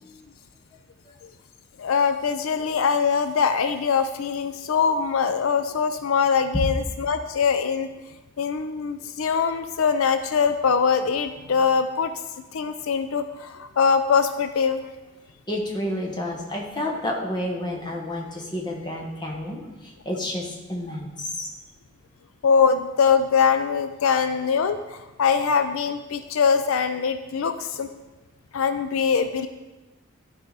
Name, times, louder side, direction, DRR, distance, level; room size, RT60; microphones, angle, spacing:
voice 1, 1.8-7.9 8.4-12.1 12.5-14.9 22.4-27.9 28.5-29.5, left 6 dB, 75° left, 9 dB, 0.4 m, -22 dB
voice 2, 15.5-21.5, left 1 dB, 20° left, -1 dB, 1.3 m, -30 dB
13.0 x 4.9 x 4.0 m, 1.1 s
head